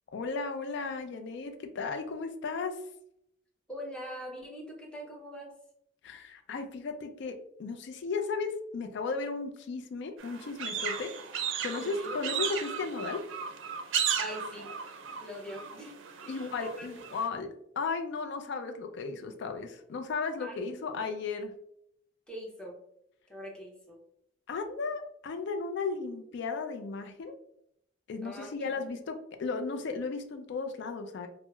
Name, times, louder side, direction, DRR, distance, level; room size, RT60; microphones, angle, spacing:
voice 1, 0.1-2.8 6.0-11.1 11.6-13.2 16.3-17.5 17.8-21.5 24.5-27.4 28.1-31.3, left 4 dB, 65° left, 6 dB, 0.4 m, -35 dB
voice 2, 3.7-5.6 11.7-12.4 13.8-14.8 15.2-15.9 16.2-17.2 20.4-21.2 22.3-22.8 23.3-24.0 28.2-28.8, equal, 5° left, -2 dB, 0.7 m, -43 dB
sound 1, 10.2-17.3, right 7 dB, 80° right, 0.4 m, -35 dB
4.4 x 2.0 x 2.2 m, 0.73 s
head